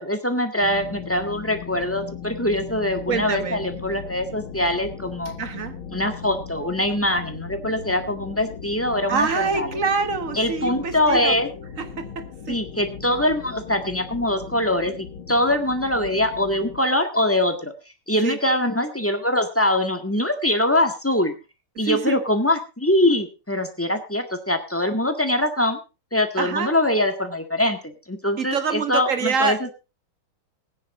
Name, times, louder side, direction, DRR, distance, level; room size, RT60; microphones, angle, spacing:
voice 1, 0.0-5.3 5.9-9.8 10.3-11.5 12.5-17.7 18.1-21.3 21.8-25.8 26.1-29.7, left 1 dB, 5° left, 6 dB, 1.5 m, -23 dB
sound 1, 0.6-16.8, left 7 dB, 80° left, 2.4 m, -38 dB
voice 2, 3.1-3.6 5.2-5.7 9.1-11.4 11.8-12.6 18.2-18.4 21.9-22.2 26.4-26.7 28.4-29.6, right 5 dB, 40° right, 10 dB, 1.6 m, -26 dB
18.5 x 9.9 x 4.0 m, 0.30 s
omnidirectional pair, 2.3 m